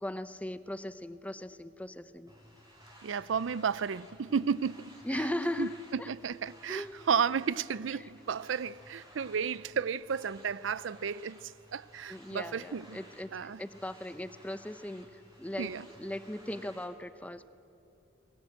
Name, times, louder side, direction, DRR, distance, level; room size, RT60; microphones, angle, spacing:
voice 1, 0.0-2.3 5.0-6.1 6.7-7.1 8.0-8.1 12.1-17.5, left 1 dB, 10° left, 0.7 m, -38 dB
sound 1, 2.3-16.9, equal, 20° right, 5.0 m, -56 dB
voice 2, 3.0-4.9 5.6-13.0 13.3-13.6 15.6-15.9, right 6 dB, 90° right, 0.5 m, -33 dB
21.5 x 21.0 x 8.8 m
head